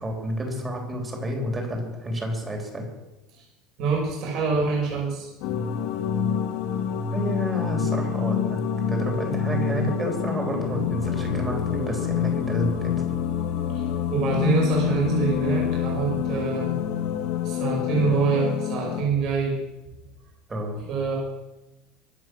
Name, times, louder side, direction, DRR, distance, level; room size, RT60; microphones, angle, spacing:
voice 1, 0.0-2.8 7.1-8.6 8.9-13.0 20.5-20.8, equal, 15° right, 2 dB, 3.4 m, -30 dB
voice 2, 3.8-5.3 13.7-13.8 14.1-16.7 17.4-19.5 20.9-21.1, right 4 dB, 45° right, -2 dB, 5.4 m, -25 dB
sound 1, 5.4-19.0, left 8 dB, 60° left, 1.8 m, -27 dB
23.0 x 8.1 x 6.2 m, 1.0 s
cardioid pair, 170°, 0 cm